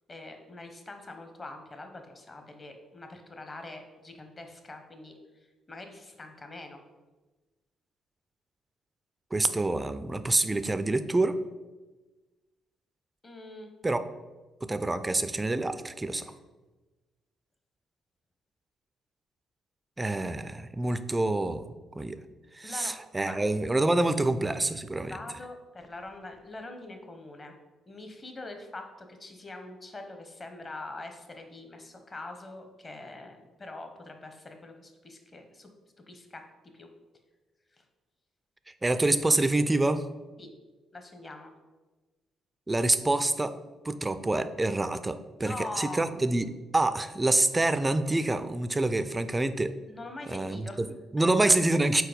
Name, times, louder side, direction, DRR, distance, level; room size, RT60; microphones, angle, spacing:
voice 1, 0.1-5.1 5.7-6.8 13.2-13.7 16.2-16.3 22.6-22.9 23.2-23.4 25.1-27.5 27.8-35.7 36.1-36.4 36.7-36.9 37.7-37.8 40.4-40.5 40.9-41.5 45.4-46.1 49.9-50.8 51.4-51.5, left 2 dB, 30° left, 5 dB, 0.9 m, -43 dB
voice 2, 9.3-11.4 13.8-14.0 14.6-16.2 20.0-21.7 22.0-22.2 22.5-25.1 38.8-40.1 42.7-43.5 43.8-49.7 50.3-52.0, right 2 dB, 15° right, 11 dB, 0.4 m, -27 dB
4.7 x 4.1 x 5.1 m, 1.2 s
cardioid pair, 90°, 0 cm